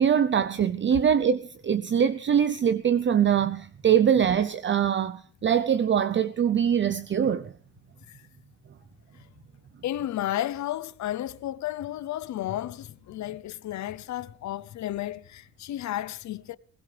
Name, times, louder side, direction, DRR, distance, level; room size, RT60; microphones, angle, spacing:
voice 1, 0.0-7.5, right 8 dB, 40° right, 0.7 m, -23 dB
voice 2, 9.8-16.6, left 13 dB, 65° left, 0.8 m, -33 dB
20.5 x 19.5 x 3.4 m
cardioid pair, 90°, 30 cm